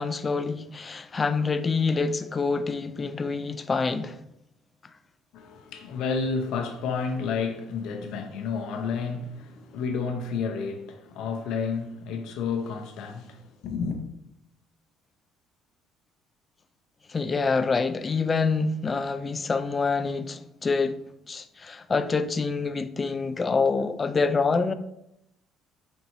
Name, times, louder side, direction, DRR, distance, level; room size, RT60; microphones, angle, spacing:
voice 1, 0.0-4.2 17.1-21.0 21.3-24.7, left 4 dB, 30° left, 0.4 m, -26 dB
voice 2, 5.3-14.0, left 5 dB, 70° left, 0.7 m, -31 dB
5.3 x 2.6 x 3.0 m
supercardioid pair, 75°, 0 cm